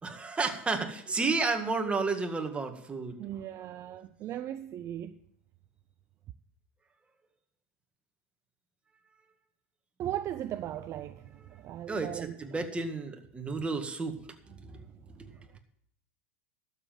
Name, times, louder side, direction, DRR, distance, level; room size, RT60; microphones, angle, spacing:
voice 1, 0.0-3.2 11.9-14.2 14.6-14.7 15.2-15.3, right 3 dB, 15° right, 1.9 m, -31 dB
voice 2, 3.2-5.2 10.0-12.3 14.5-14.8 15.2-15.6, right 11 dB, 40° right, 0.6 m, -38 dB
12.5 x 7.4 x 7.4 m
hypercardioid pair, 90°, 7 cm